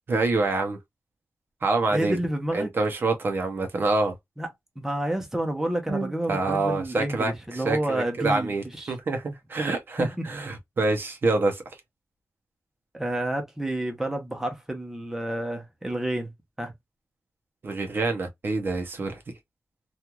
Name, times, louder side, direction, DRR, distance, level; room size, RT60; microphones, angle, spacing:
voice 1, 0.1-0.8 1.6-2.2 2.5-4.1 5.9-11.6 17.6-19.4, right 3 dB, 45° right, 0.7 m, -26 dB
voice 2, 1.9-2.7 4.4-4.5 4.8-8.5 8.8-8.9 10.0-10.1 12.9-16.3 16.6-16.7, right 1 dB, 5° right, 0.7 m, -29 dB
3.0 x 2.4 x 2.3 m
wide cardioid pair, 150°, 5 cm